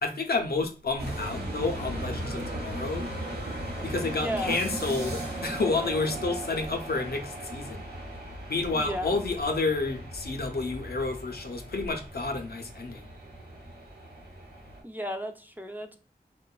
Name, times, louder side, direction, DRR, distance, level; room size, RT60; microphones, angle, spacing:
voice 1, 0.0-3.1 3.8-7.8 8.5-13.1, left 3 dB, 80° left, 4 dB, 0.5 m, -30 dB
sound 1, 1.0-14.8, right 1 dB, 90° right, 0.8 m, -37 dB
voice 2, 4.1-4.6 8.7-9.2 14.8-16.0, equal, 10° right, 5 dB, 0.3 m, -34 dB
2.9 x 2.1 x 2.2 m, 0.35 s
wide cardioid pair, 45°, 16 cm